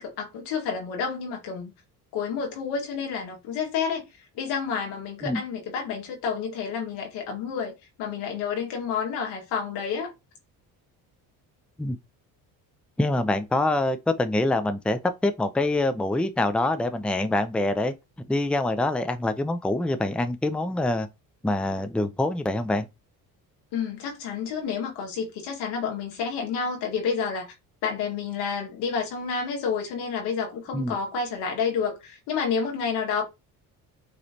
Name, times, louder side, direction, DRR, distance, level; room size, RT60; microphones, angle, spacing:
voice 1, 0.0-1.7 2.1-4.0 4.3-7.7 8.0-10.1 23.7-27.5 27.8-33.2, left 6 dB, 90° left, 2.0 m, -29 dB
voice 2, 13.0-17.9 18.3-21.1 21.4-22.9 30.7-31.0, left 2 dB, 5° left, 0.6 m, -25 dB
5.2 x 3.2 x 2.9 m
cardioid pair, 90°, 39 cm